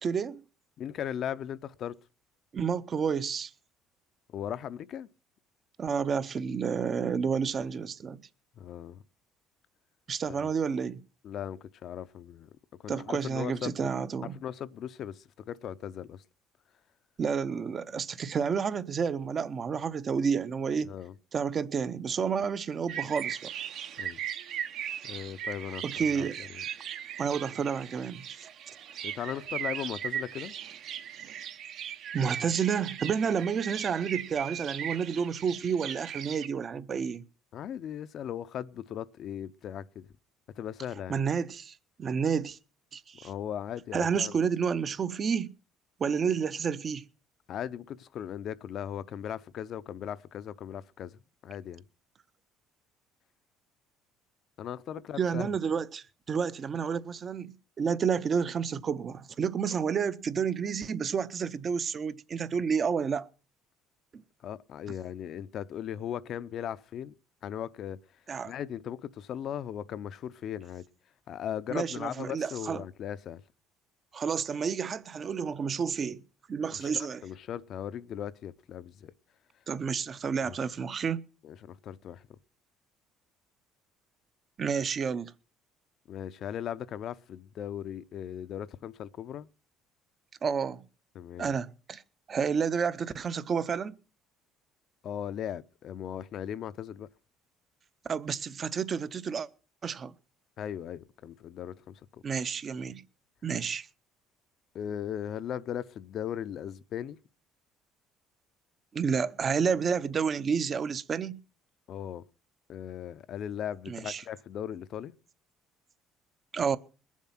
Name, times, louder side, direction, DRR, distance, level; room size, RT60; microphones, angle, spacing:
voice 1, 0.0-0.4 2.5-3.5 5.8-8.2 10.1-11.0 12.9-14.4 17.2-20.9 21.3-23.5 25.8-26.4 27.2-28.5 32.1-37.2 41.1-42.6 42.9-43.3 43.9-45.5 46.0-47.0 55.2-63.3 64.1-64.2 68.3-68.5 71.7-72.8 74.1-76.2 76.5-77.2 79.7-81.2 84.6-85.3 90.4-90.8 91.4-92.0 92.3-94.0 98.0-99.5 99.8-100.1 102.2-103.0 103.4-103.9 108.9-111.4 113.9-114.2 116.5-116.8, right 6 dB, 35° right, 0.7 m, -30 dB
voice 2, 0.8-2.0 4.3-5.1 8.6-9.0 10.3-10.5 11.2-13.9 14.3-16.2 20.8-21.1 24.0-24.2 25.0-26.6 29.0-30.5 37.5-40.1 40.6-41.2 43.2-44.3 47.5-51.8 54.6-55.5 64.4-67.1 67.4-68.0 68.4-70.9 71.3-73.4 76.8-79.1 80.4-80.6 81.4-82.3 86.1-89.5 91.1-91.5 95.0-97.1 100.6-102.2 104.7-107.2 111.9-112.2 112.7-115.1, left 9 dB, 50° left, 0.6 m, -38 dB
sound 1, 22.9-36.5, right 9 dB, 60° right, 1.0 m, -38 dB
21.5 x 7.3 x 5.8 m
cardioid pair, 130°, 0 cm